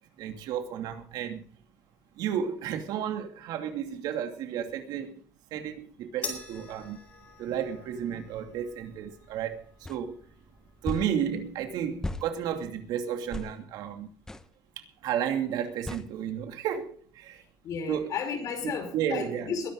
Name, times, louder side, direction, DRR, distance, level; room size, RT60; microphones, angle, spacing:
voice 1, 0.2-1.4 2.2-5.2 5.5-7.0 7.4-10.1 10.8-14.1 14.8-17.4 17.9-18.1 18.9-19.5, right 9 dB, 80° right, 2.8 m, -32 dB
sound 1, 6.2-12.8, left 3 dB, 25° left, 4.9 m, -46 dB
sound 2, 9.8-10.0 10.8-11.1 12.0-12.3 13.3-13.5 14.3-14.5 15.9-16.1, left 2 dB, 10° left, 1.0 m, -35 dB
voice 2, 17.6-19.7, left 6 dB, 55° left, 5.4 m, -33 dB
22.0 x 11.5 x 4.0 m
cardioid pair, 165°, 7 cm